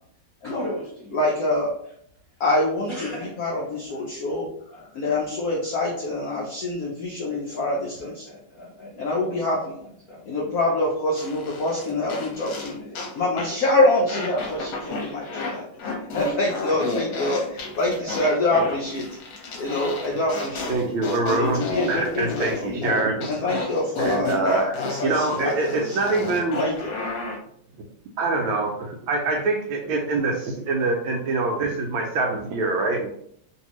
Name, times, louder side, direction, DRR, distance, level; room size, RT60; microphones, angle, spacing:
voice 1, 0.4-1.3 2.9-5.3 6.3-6.5 7.2-9.4 9.8-10.8 11.5-13.6 14.0-14.4 15.0-16.4 16.7-18.3, left 1 dB, 20° left, -8 dB, 0.9 m, -41 dB
voice 2, 1.1-1.7 2.4-2.9 3.4-4.5 4.9-8.3 9.0-9.8 10.3-12.8 13.2-15.6 16.1-19.0 19.6-20.7 21.2-22.9 23.3-26.0 26.6-27.0, left 2 dB, 85° left, -3 dB, 0.8 m, -25 dB
sound 1, 11.2-13.1 13.4-13.6 14.1-15.5 15.8-27.4, left 3 dB, 65° left, 1.3 m, -31 dB
voice 3, 20.7-23.4 24.0-24.8 25.0-26.6 28.2-33.1, right 3 dB, 75° right, 1 dB, 1.2 m, -25 dB
3.2 x 2.7 x 2.9 m, 0.66 s
omnidirectional pair, 2.4 m